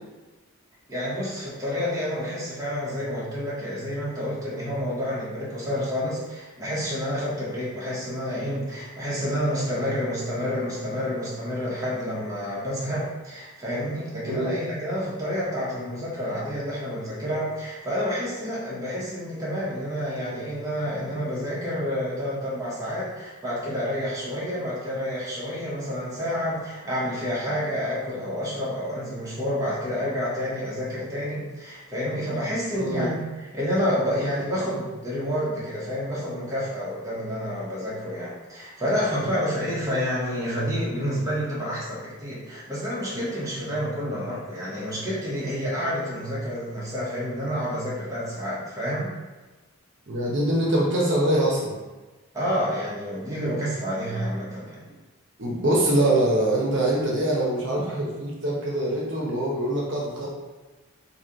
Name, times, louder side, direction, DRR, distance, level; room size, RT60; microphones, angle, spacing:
voice 1, 0.9-33.2 33.5-49.1 52.3-54.8, equal, 15° right, -7 dB, 0.9 m, -29 dB
voice 2, 32.7-33.1 39.2-39.3 50.1-51.7 55.4-60.3, right 1 dB, 55° right, -4 dB, 0.8 m, -24 dB
3.1 x 2.7 x 3.8 m, 1.2 s
head